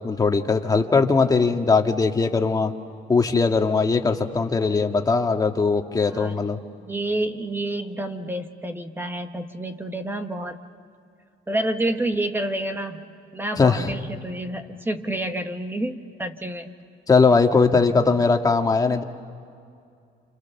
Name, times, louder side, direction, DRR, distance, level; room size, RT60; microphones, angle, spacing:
voice 1, 0.0-2.7 3.1-6.6 13.6-13.9 17.1-19.0, left 4 dB, 20° left, 4 dB, 1.8 m, -20 dB
voice 2, 6.1-6.5 6.8-10.6 11.5-13.0 13.3-16.7, right 1 dB, 10° right, 7 dB, 1.3 m, -29 dB
29.5 x 28.5 x 7.1 m, 2.4 s
cardioid pair, 110°, 17 cm